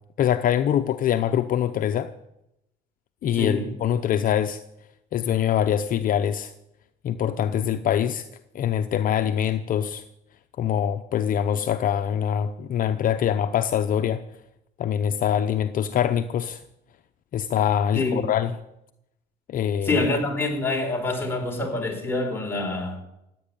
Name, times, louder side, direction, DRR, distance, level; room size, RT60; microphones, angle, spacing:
voice 1, 0.2-2.1 3.2-4.6 5.1-6.5 7.0-8.2 8.5-10.0 10.6-14.2 14.8-16.6 17.3-18.5 19.5-20.1, left 9 dB, 55° left, 0.7 m, -24 dB
voice 2, 3.3-3.7 17.9-18.3 19.8-23.0, left 2 dB, 15° left, 4.5 m, -26 dB
15.5 x 9.3 x 8.9 m
cardioid pair, 110°, 17 cm